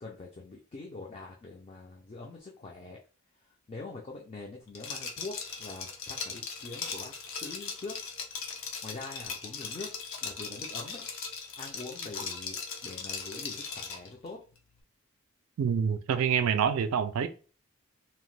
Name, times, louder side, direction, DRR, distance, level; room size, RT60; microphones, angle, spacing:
voice 1, 0.0-3.0 3.7-7.9 8.8-9.9 10.2-11.0 11.6-14.4, left 3 dB, 30° left, 0.4 m, -44 dB
Liquid, 4.7-14.1, left 5 dB, 70° left, 0.6 m, -39 dB
voice 2, 15.6-17.3, right 7 dB, 85° right, 0.3 m, -26 dB
2.8 x 2.1 x 3.1 m
head